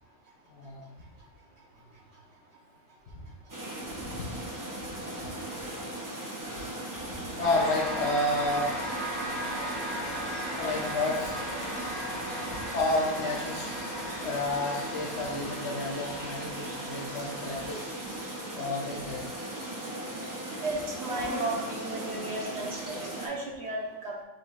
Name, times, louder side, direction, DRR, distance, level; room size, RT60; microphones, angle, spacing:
voice 1, 0.5-0.8 3.1-3.2 4.0-4.5 7.4-8.7 10.6-11.3 12.7-13.7 14.2-17.8 18.5-19.2, left 2 dB, 60° left, -1 dB, 0.8 m, -30 dB
sound 1, 3.5-23.3, right 1 dB, 25° right, 0.4 m, -38 dB
sound 2, 7.4-18.8, equal, 85° right, 2.0 m, -37 dB
voice 2, 20.6-24.2, right 2 dB, 55° right, -2 dB, 1.0 m, -34 dB
6.1 x 3.0 x 2.2 m, 1.0 s
omnidirectional pair, 1.4 m